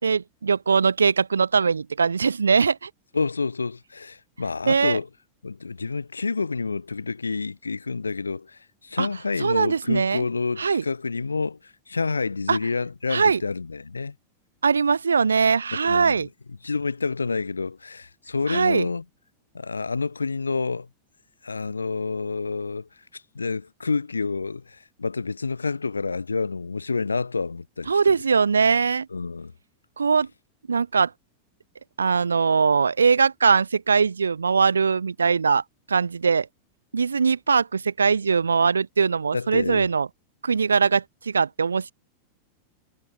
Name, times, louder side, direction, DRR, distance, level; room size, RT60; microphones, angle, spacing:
voice 1, 0.0-2.9 4.7-5.0 9.0-9.1 9.4-10.2 10.6-10.8 12.5-12.6 13.1-13.4 14.6-16.3 18.5-18.9 27.9-29.1 30.0-30.3 30.7-31.1 32.0-35.6 35.9-36.5 36.9-40.1 40.4-41.9, right 5 dB, 75° right, 2.8 m, -21 dB
voice 2, 3.1-5.1 5.4-14.1 15.8-16.3 16.6-19.0 19.5-20.9 21.4-28.0 29.1-29.5 39.3-39.9, left 4 dB, 75° left, 3.6 m, -28 dB
figure-of-eight pair, 90°, 0 cm